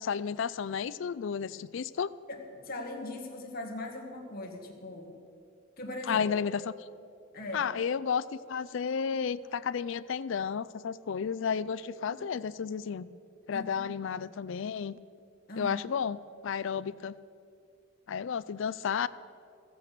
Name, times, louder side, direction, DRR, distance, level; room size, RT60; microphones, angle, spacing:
voice 1, 0.0-2.1 6.1-6.7 7.5-13.1 13.5-14.9 15.6-17.1 18.1-19.1, left 6 dB, 65° left, 18 dB, 0.4 m, -32 dB
voice 2, 2.3-5.2 5.8-6.3 7.3-7.7 12.0-12.2 13.5-14.0 15.5-15.8, left 2 dB, 45° left, 1 dB, 1.8 m, -40 dB
14.5 x 8.7 x 6.7 m, 2.5 s
head